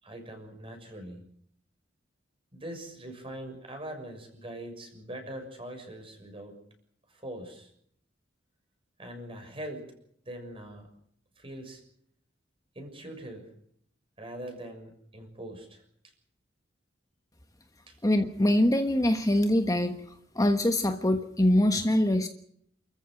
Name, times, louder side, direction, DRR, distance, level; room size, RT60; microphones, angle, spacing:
voice 1, 0.0-1.2 2.5-6.6 7.1-7.7 9.0-9.9 10.2-10.9 11.4-11.8 12.7-13.5 14.2-15.8 17.9-18.0, right 1 dB, 30° right, 5 dB, 6.5 m, -42 dB
voice 2, 18.0-20.0 20.3-22.3, left 1 dB, 20° left, 7 dB, 1.3 m, -23 dB
29.5 x 14.5 x 7.8 m, 0.68 s
head